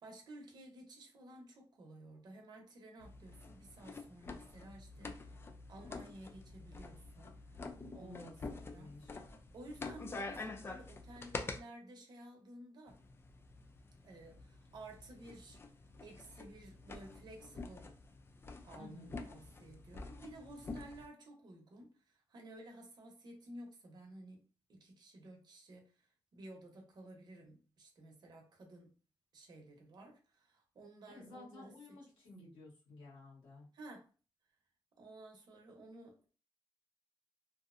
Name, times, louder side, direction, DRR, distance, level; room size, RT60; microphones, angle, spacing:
voice 1, 0.0-5.4 5.7-9.0 9.5-13.0 14.0-15.6 16.0-17.9 18.6-24.4 24.7-28.9 29.3-32.0 33.7-34.1 35.0-36.3, right 1 dB, 55° right, 0.8 m, -54 dB
sound 1, 3.0-11.6 12.9-21.1, left 3 dB, 25° left, 0.3 m, -48 dB
voice 2, 7.9-9.2 18.8-19.2 31.1-33.7, left 2 dB, 85° left, 1.3 m, -54 dB
2.7 x 2.0 x 2.4 m
cardioid pair, 120°, 9 cm